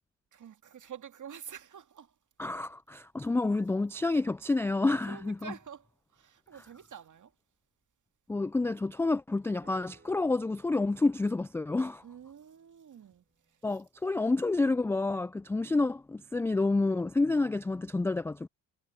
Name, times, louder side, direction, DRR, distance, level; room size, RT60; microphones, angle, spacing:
voice 1, 0.3-2.2 5.1-7.3 12.0-13.6, right 8 dB, 40° right, 2.2 m, -48 dB
voice 2, 2.4-5.5 8.3-12.0 13.6-18.5, left 3 dB, 5° left, 0.3 m, -29 dB
sound 1, 9.6-13.7, right 4 dB, 25° right, 5.3 m, -64 dB
hypercardioid pair, 55°, 46 cm